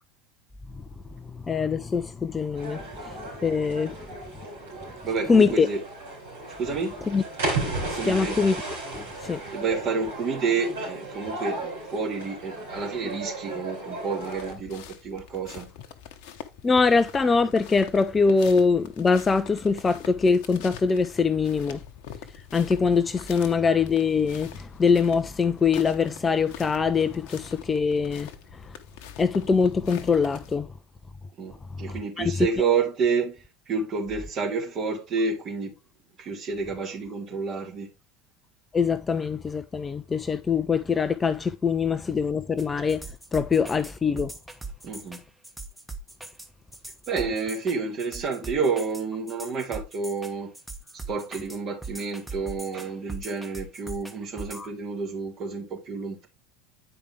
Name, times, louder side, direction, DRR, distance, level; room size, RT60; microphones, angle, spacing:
voice 1, 1.2-4.0 5.3-5.7 7.1-7.2 7.9-8.6 8.9-9.4 16.6-21.8 22.5-28.8 29.2-30.7 31.8-32.7 38.7-43.1 43.3-44.3 54.5-54.7, left 5 dB, 20° left, 0.6 m, -23 dB
sound 1, 2.5-14.5, right 2 dB, 70° right, 4.5 m, -35 dB
voice 2, 5.0-5.8 6.6-7.0 8.0-8.4 9.5-15.7 31.4-35.7 36.2-37.9 44.8-45.2 47.1-50.5 51.1-56.3, right 5 dB, 40° right, 2.4 m, -29 dB
sound 2, 14.2-30.6, left 8 dB, 55° left, 1.0 m, -45 dB
sound 3, 42.6-54.7, right 3 dB, 5° right, 1.3 m, -40 dB
9.0 x 5.1 x 3.4 m
figure-of-eight pair, 75°, 0 cm